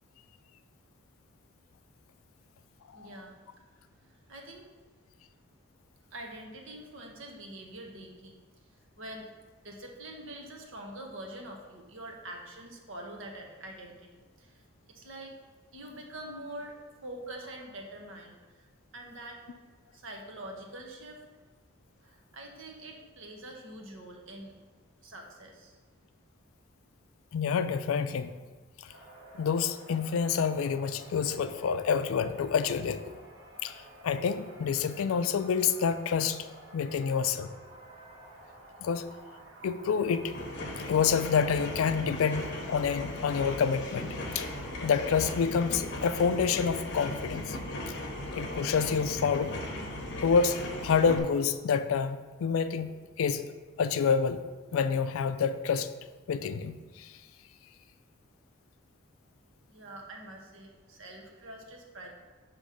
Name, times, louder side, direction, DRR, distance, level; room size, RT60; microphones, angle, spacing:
voice 1, 2.9-3.4 4.3-4.7 6.1-8.4 9.0-9.3 9.6-14.6 14.9-15.4 15.7-18.7 18.9-19.4 19.9-21.2 22.0-24.5 25.0-25.8 59.7-62.1, right 1 dB, 70° right, 1 dB, 0.9 m, -45 dB
voice 2, 27.3-28.3 29.3-33.0 33.6-36.5 36.7-37.5 38.8-39.1 39.6-40.4 40.9-44.5 44.8-47.6 48.3-49.6 50.2-52.9 53.2-53.5 53.8-54.4 54.7-55.9 56.3-57.1, left 6 dB, 80° left, 11 dB, 0.3 m, -28 dB
sound 1, 28.9-46.6, right 1 dB, 85° right, 1.4 m, -53 dB
sound 2, 40.2-51.2, left 1 dB, 55° left, 0.8 m, -37 dB
6.4 x 3.1 x 5.0 m, 1.3 s
head